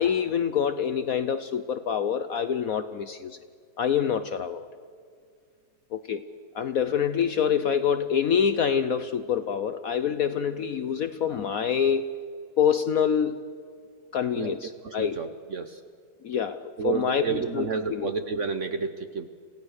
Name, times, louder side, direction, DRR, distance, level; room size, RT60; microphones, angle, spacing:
voice 1, 0.0-3.4 3.8-4.7 5.9-6.2 6.5-12.1 12.6-13.4 14.1-15.2 16.2-18.1, left 8 dB, 65° left, 11 dB, 0.9 m, -26 dB
voice 2, 14.8-15.8 16.8-19.3, right 5 dB, 55° right, 9 dB, 0.9 m, -30 dB
27.0 x 16.5 x 6.5 m, 2.1 s
omnidirectional pair, 2.1 m